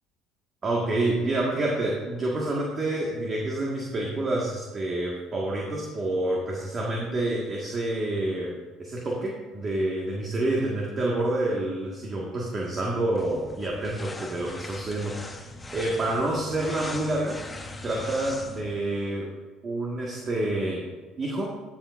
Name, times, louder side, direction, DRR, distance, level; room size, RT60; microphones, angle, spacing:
voice 1, 0.6-17.4 17.8-19.3 19.6-20.8 21.2-21.5, right 2 dB, 35° right, -2 dB, 1.8 m, -28 dB
sound 1, 13.2-18.7, left 2 dB, 15° left, 1.1 m, -40 dB
15.5 x 7.5 x 2.6 m, 1.3 s
supercardioid pair, 75°, 0 cm